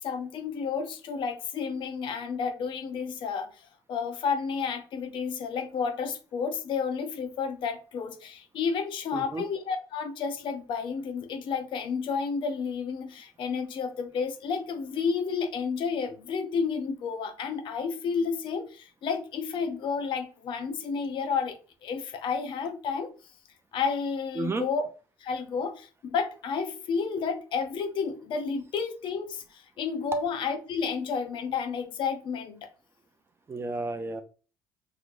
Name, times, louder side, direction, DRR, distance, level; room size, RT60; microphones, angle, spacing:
voice 1, 0.0-21.5 21.8-23.1 23.7-24.8 25.2-32.7, left 5 dB, 60° left, 1.0 m, -31 dB
voice 2, 9.1-9.4 24.4-24.7 33.5-34.2, right 3 dB, 25° right, 0.8 m, -32 dB
4.8 x 3.1 x 2.7 m
hypercardioid pair, 70°, 10 cm